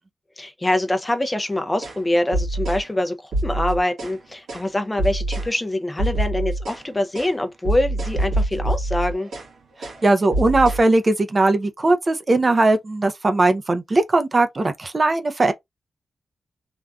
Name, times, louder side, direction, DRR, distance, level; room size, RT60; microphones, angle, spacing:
voice 1, 0.4-9.3, left 1 dB, 20° left, 0.5 m, -24 dB
sound 1, 1.8-2.0 2.3-2.8 3.3-4.2 4.5-4.7 5.0-5.5 6.0-6.8 7.1-7.3 7.6-9.5 9.8-10.0 10.3-10.8, right 1 dB, 90° right, 1.5 m, -25 dB
voice 2, 10.0-15.5, right 2 dB, 35° right, 0.5 m, -19 dB
3.4 x 2.4 x 2.3 m
cardioid pair, 85°, 0 cm